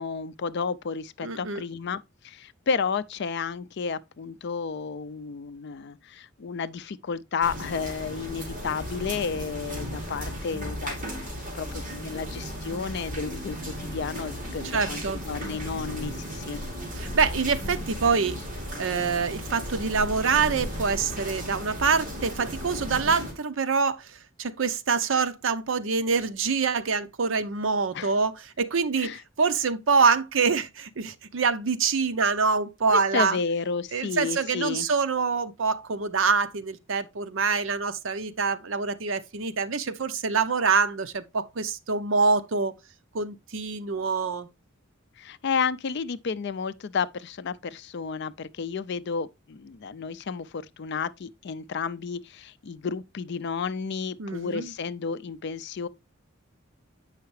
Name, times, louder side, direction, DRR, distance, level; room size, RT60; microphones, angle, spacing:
voice 1, 0.0-11.1 11.5-16.6 27.9-28.1 29.0-29.2 32.9-34.9 45.2-55.9, left 5 dB, 55° left, 0.4 m, -32 dB
voice 2, 1.2-1.6 14.7-15.2 16.9-18.4 18.8-33.4 33.9-42.7 43.1-44.5 54.2-54.7, right 5 dB, 65° right, 0.6 m, -25 dB
sound 1, 7.4-23.3, equal, 40° right, 2.9 m, -35 dB
sound 2, 10.5-19.2, equal, 25° left, 2.7 m, -47 dB
8.0 x 5.7 x 3.1 m
head